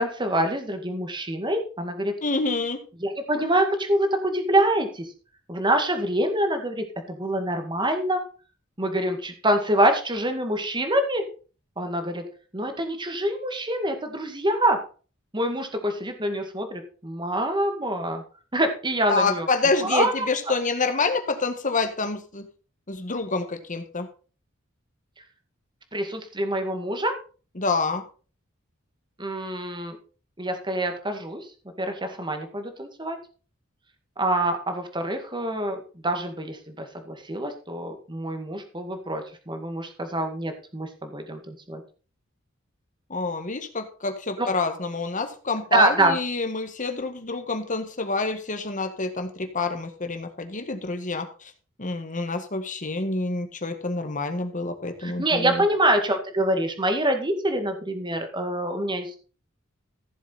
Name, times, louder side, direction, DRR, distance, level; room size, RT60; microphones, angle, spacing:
voice 1, 0.0-2.1 3.0-5.1 5.5-8.2 8.8-11.2 11.8-12.2 12.5-14.8 15.3-18.2 18.5-19.5 19.8-20.3 25.9-27.1 29.2-30.0 30.4-31.5 31.8-33.2 34.2-41.8 44.4-44.5 45.7-46.2 55.0-59.1, right 1 dB, 25° right, 6 dB, 2.1 m, -25 dB
voice 2, 2.2-2.8 19.1-22.5 22.9-24.1 27.6-28.0 43.1-51.3 51.8-55.6, left 3 dB, 40° left, 7 dB, 1.7 m, -27 dB
15.5 x 7.2 x 4.2 m, 0.37 s
head